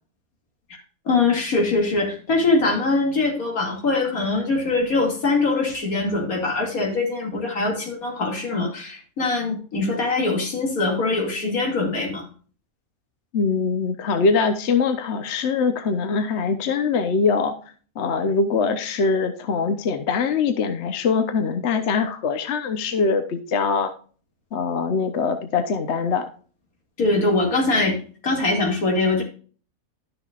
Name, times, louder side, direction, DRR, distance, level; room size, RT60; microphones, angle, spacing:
voice 1, 1.1-12.3 27.0-28.0 28.2-29.2, left 3 dB, 85° left, 1 dB, 2.7 m, -22 dB
voice 2, 13.3-17.5 18.0-23.9 24.5-26.3, left 5 dB, 55° left, 8 dB, 1.0 m, -22 dB
12.0 x 6.6 x 2.4 m, 0.41 s
omnidirectional pair, 1.5 m